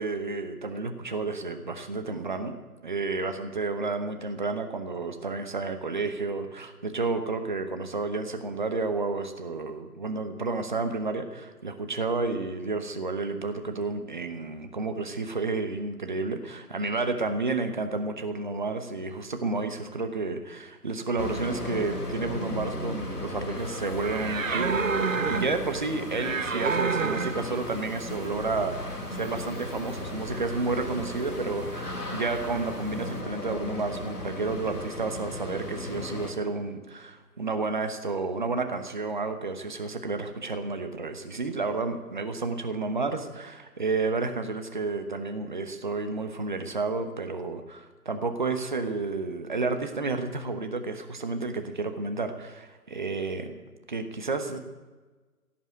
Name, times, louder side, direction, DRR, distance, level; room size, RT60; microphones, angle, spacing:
voice 1, 0.0-2.5 2.8-53.6 53.9-54.6, right 3 dB, 30° right, 7 dB, 1.0 m, -31 dB
sound 1, 21.2-36.3, left 2 dB, 75° left, 3.0 m, -36 dB
sound 2, 23.6-33.2, right 5 dB, 55° right, 0.9 m, -32 dB
17.0 x 7.3 x 9.1 m, 1.3 s
figure-of-eight pair, 155°, 46 cm